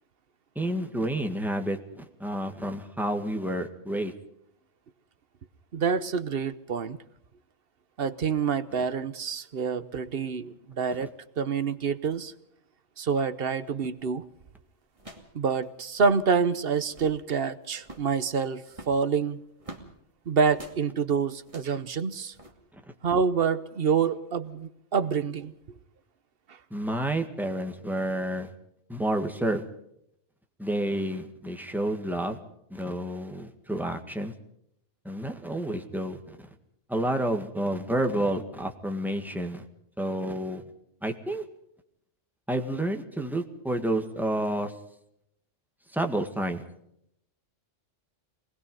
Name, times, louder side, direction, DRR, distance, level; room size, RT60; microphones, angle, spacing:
voice 1, 0.5-1.8 2.2-4.1 26.7-28.5 28.9-29.6 30.6-32.4 32.7-34.3 35.0-36.4 36.9-39.6 40.0-40.6 41.0-41.4 42.5-44.7 45.9-46.6, right 1 dB, ahead, 4 dB, 1.8 m, -29 dB
voice 2, 5.7-7.0 8.0-12.3 13.0-14.2 15.3-19.4 20.3-22.3 23.0-25.5 26.5-26.6, right 6 dB, 55° right, 13 dB, 1.1 m, -27 dB
sound 1, 14.0-14.2 14.9-15.4 15.6-15.7 15.9-16.2 16.7-17.2 17.8-18.2 18.7-19.9 20.5-20.8 21.4-21.8 22.3-22.5, right 2 dB, 25° right, 2.5 m, -46 dB
24.5 x 20.0 x 5.4 m, 0.76 s
omnidirectional pair, 1.3 m